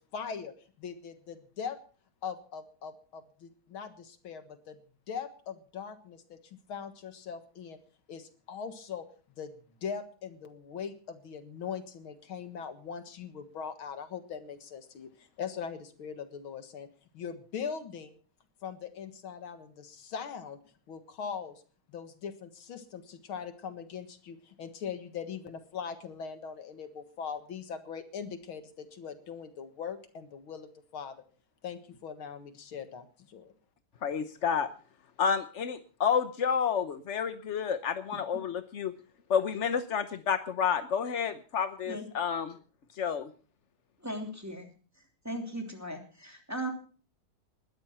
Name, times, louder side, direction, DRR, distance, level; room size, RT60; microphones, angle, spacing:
voice 1, 0.0-1.8 2.2-4.8 5.1-7.8 8.1-9.1 9.4-16.9 17.1-18.1 18.6-20.6 20.9-21.6 21.9-31.2 31.6-33.5, left 6 dB, 75° left, 10 dB, 2.4 m, -41 dB
voice 2, 34.0-34.7 35.2-38.9 39.3-42.6 43.0-43.3, left 7 dB, 55° left, 10 dB, 0.8 m, -30 dB
voice 3, 44.0-44.7 45.2-46.7, right 1 dB, 5° right, 3 dB, 2.9 m, -37 dB
20.0 x 13.0 x 4.3 m, 0.40 s
omnidirectional pair, 2.3 m